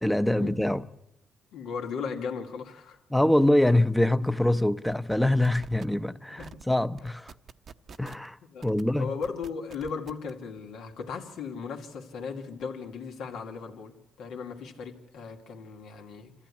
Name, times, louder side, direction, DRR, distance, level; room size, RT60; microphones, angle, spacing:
voice 1, 0.0-0.8 3.1-7.3 8.0-8.4 8.6-9.1, left 1 dB, 5° left, 0.8 m, -24 dB
voice 2, 1.5-3.0 6.1-6.7 8.4-8.7 9.0-16.3, left 5 dB, 80° left, 2.6 m, -37 dB
sound 1, 4.2-4.5 4.9-5.2 5.4-5.9 6.4-6.6 7.0-8.3 8.6-8.8 9.2-10.3, right 6 dB, 55° right, 0.8 m, -47 dB
26.0 x 15.0 x 9.9 m
cardioid pair, 90°, 0 cm